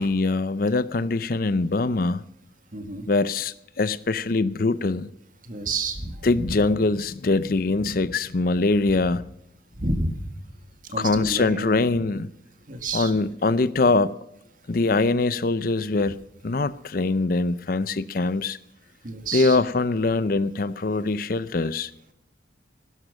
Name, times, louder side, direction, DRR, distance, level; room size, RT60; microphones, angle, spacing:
voice 1, 0.0-2.2 3.1-5.1 6.2-9.3 11.0-12.3 12.9-14.1 14.7-16.2 16.4-18.6 19.3-21.9, left 3 dB, 50° left, 0.5 m, -23 dB
voice 2, 2.7-3.1 5.4-6.2 9.8-10.2 10.9-11.7 12.7-13.1 19.0-19.6, right 3 dB, 45° right, 1.9 m, -29 dB
17.0 x 12.0 x 6.4 m
head